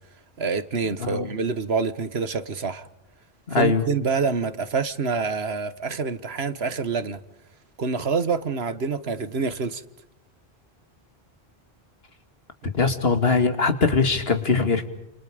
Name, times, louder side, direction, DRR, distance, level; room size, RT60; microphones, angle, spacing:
voice 1, 0.4-2.9 3.5-7.2 7.8-9.8, right 5 dB, 85° right, 1.7 m, -26 dB
voice 2, 3.5-3.8 12.7-14.9, left 4 dB, 75° left, 2.6 m, -21 dB
30.0 x 28.0 x 5.1 m
omnidirectional pair, 1.0 m